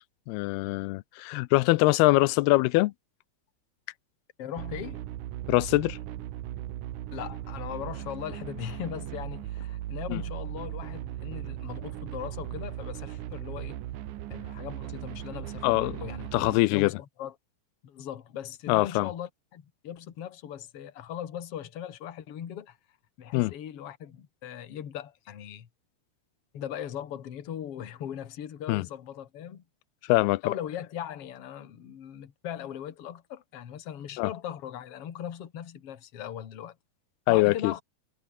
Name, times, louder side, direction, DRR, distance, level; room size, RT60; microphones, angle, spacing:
voice 1, 0.3-2.9 5.5-6.0 10.1-10.2 15.6-16.0 16.3-16.9 18.7-19.1 23.3-23.5 28.7-28.9 30.1-30.5 34.2-34.3 37.3-37.7, left 21 dB, 80° left, 2.6 m, -23 dB
voice 2, 4.4-5.0 7.1-13.8 14.3-17.3 17.8-22.8 23.2-25.7 26.5-29.6 30.4-36.7 37.3-37.8, left 10 dB, 45° left, 2.3 m, -39 dB
sound 1, 4.6-16.6, right 13 dB, 65° right, 2.2 m, -38 dB
omnidirectional pair, 4.6 m